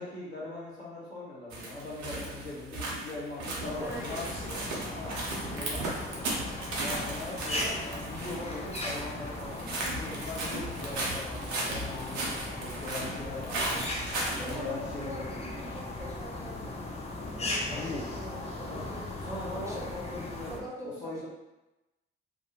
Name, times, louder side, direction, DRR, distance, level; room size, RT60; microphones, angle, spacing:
voice 1, 0.0-4.5 4.9-5.2 5.6-5.8 6.1-6.2 6.8-9.6 9.9-13.8 14.4-15.3 17.7-18.1 18.7-18.9 19.2-21.3, left 2 dB, 85° left, -6 dB, 0.7 m, -40 dB
sound 1, 1.5-14.6, right 2 dB, 65° right, 0.7 m, -36 dB
sound 2, 3.6-20.6, left 2 dB, 20° left, 0.5 m, -38 dB
voice 2, 3.8-4.7 5.0-6.3 9.5-10.5 14.4-16.8 17.2-19.1 19.5-20.0 20.5-21.3, equal, 10° right, -4 dB, 0.8 m, -44 dB
2.4 x 2.1 x 2.8 m, 0.98 s
figure-of-eight pair, 45°, 31 cm